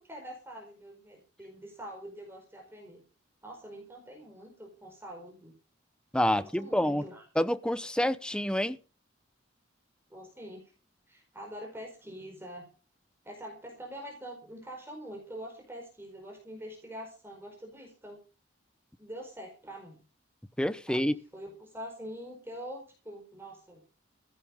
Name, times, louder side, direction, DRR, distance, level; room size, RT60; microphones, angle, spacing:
voice 1, 0.0-3.0 3.4-5.5 6.3-7.3 10.1-10.7 11.1-12.7 13.2-18.2 19.0-20.0 20.8-23.8, equal, 10° right, 4.7 m, -45 dB
voice 2, 6.1-7.0 7.4-8.8 20.6-21.1, equal, 5° left, 0.7 m, -27 dB
16.0 x 10.0 x 5.7 m
head